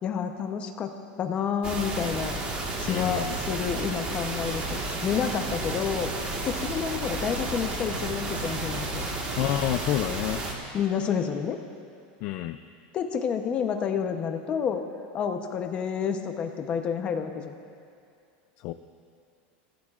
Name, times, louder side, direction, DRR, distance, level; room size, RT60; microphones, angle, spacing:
voice 1, 0.0-0.9 1.2-2.3 2.8-6.1 6.5-9.0 10.7-11.6 12.9-14.8 15.1-17.5, left 7 dB, 20° left, 6 dB, 0.8 m, -29 dB
sound 1, 1.6-10.5, right 2 dB, 25° right, 1.5 m, -32 dB
voice 2, 2.9-3.4 9.4-10.4 12.2-12.6 18.6-18.7, left 13 dB, 40° left, 9 dB, 0.3 m, -28 dB
28.5 x 15.5 x 2.5 m, 2.5 s
supercardioid pair, 175°, 5 cm